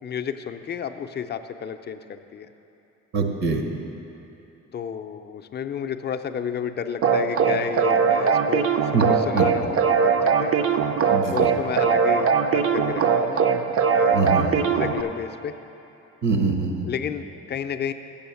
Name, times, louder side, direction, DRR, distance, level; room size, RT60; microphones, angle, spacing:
voice 1, 0.0-2.5 4.7-9.0 9.3-10.5 11.3-13.4 13.9-14.5 14.8-15.6 16.9-17.9, left 8 dB, 35° left, 9 dB, 0.4 m, -31 dB
voice 2, 3.1-3.6 8.9-9.0 9.3-9.4 11.1-11.5 14.1-14.6 16.2-16.9, right 4 dB, 65° right, 3 dB, 1.0 m, -23 dB
sound 1, 7.0-15.0, right 6 dB, 50° right, 0.5 m, -21 dB
7.1 x 7.1 x 6.9 m, 2.9 s
cardioid pair, 90°, 30 cm